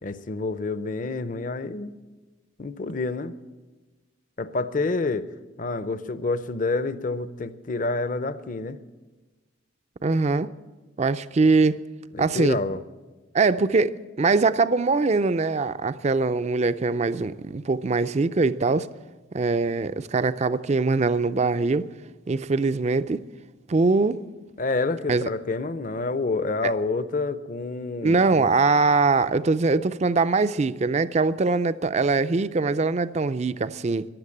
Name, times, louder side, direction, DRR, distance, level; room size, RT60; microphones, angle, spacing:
voice 1, 0.0-1.9 2.6-3.3 4.4-5.3 5.6-8.8 12.1-12.8 24.6-28.5, left 3 dB, 40° left, 0.6 m, -28 dB
voice 2, 10.0-10.5 11.0-11.8 12.2-12.6 13.3-18.9 19.3-21.9 22.3-23.2 23.7-24.2 25.1-25.3 26.6-26.7 28.0-34.1, right 3 dB, 30° right, 0.4 m, -22 dB
15.0 x 11.0 x 8.6 m
head